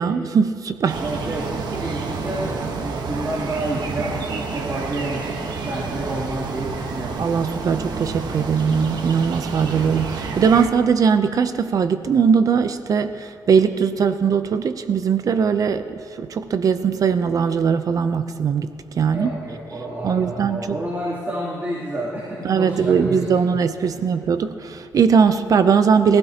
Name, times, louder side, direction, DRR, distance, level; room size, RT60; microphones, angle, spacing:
voice 1, 0.0-1.0 7.2-19.3 20.0-20.8 22.4-26.2, right 6 dB, 55° right, 10 dB, 0.6 m, -20 dB
sound 1, 0.9-10.7, right 4 dB, 75° right, 1.2 m, -29 dB
voice 2, 1.0-7.2 19.1-23.3, right 1 dB, 30° right, -8 dB, 3.1 m, -29 dB
22.0 x 16.0 x 2.9 m, 2.3 s
wide cardioid pair, 140°, 7 cm